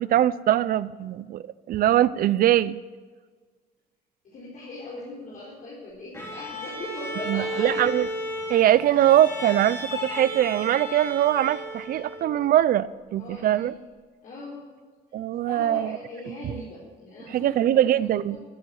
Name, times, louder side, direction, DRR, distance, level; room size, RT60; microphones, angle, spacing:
voice 1, 0.0-2.8 7.3-8.1 8.5-13.7 15.1-16.0 16.3-16.6 17.3-18.4, right 12 dB, 60° right, 17 dB, 0.6 m, -22 dB
voice 2, 4.2-7.8 13.2-13.7 14.2-14.7 15.4-17.9, left 2 dB, 50° left, -6 dB, 4.2 m, -39 dB
Bowed string instrument, 6.1-12.4, equal, 15° left, 4.2 m, -34 dB
14.5 x 8.2 x 8.0 m, 1.5 s
cardioid pair, 110°, 17 cm